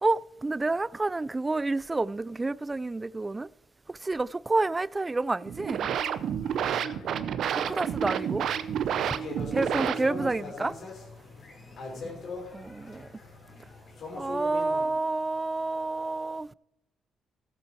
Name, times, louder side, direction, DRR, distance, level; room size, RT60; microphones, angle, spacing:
voice 1, 0.0-3.5 3.9-5.9 7.6-8.5 9.1-9.2 9.5-10.8 12.5-13.1 14.1-16.5, right 3 dB, 20° right, 0.3 m, -29 dB
sound 1, 5.4-10.4, right 8 dB, 70° right, 0.7 m, -30 dB
voice 2, 6.4-7.3 11.7-12.1, left 9 dB, 80° left, 0.8 m, -51 dB
sound 2, 7.7-14.9, left 3 dB, 65° left, 3.4 m, -41 dB
16.0 x 7.3 x 4.5 m
cardioid pair, 90°, 0 cm